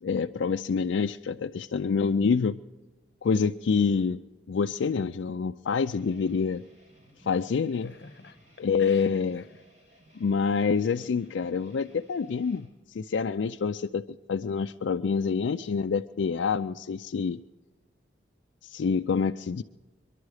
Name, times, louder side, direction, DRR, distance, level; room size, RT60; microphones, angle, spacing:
voice 1, 0.0-2.6 3.2-4.2 4.5-6.6 7.2-7.9 8.6-9.4 10.2-17.4 18.6-19.6, left 5 dB, 80° left, 0.4 m, -27 dB
sound 1, 5.8-12.7, equal, 55° right, 6.1 m, -58 dB
voice 2, 7.8-9.5, left 3 dB, 65° left, 0.8 m, -46 dB
23.0 x 11.5 x 4.8 m
head